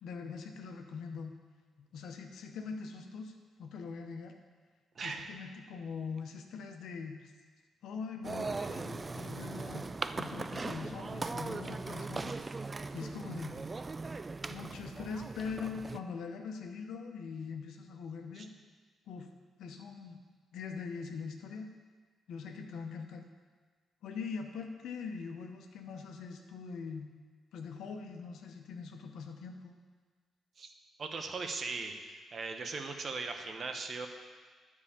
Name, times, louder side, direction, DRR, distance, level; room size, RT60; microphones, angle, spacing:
voice 1, 0.0-1.4 1.9-3.3 3.6-4.3 5.0-7.3 7.8-9.9 10.2-13.6 14.5-18.5 19.1-19.3 19.6-20.2 20.5-21.7 22.3-23.3 24.0-27.1 27.5-29.7, left 5 dB, 75° left, 4 dB, 0.9 m, -42 dB
sound 1, 8.2-16.0, right 3 dB, 35° right, 0.4 m, -39 dB
voice 2, 31.0-34.1, right 4 dB, 55° right, 5 dB, 1.1 m, -39 dB
9.8 x 4.8 x 7.0 m, 1.5 s
supercardioid pair, 55°, 0 cm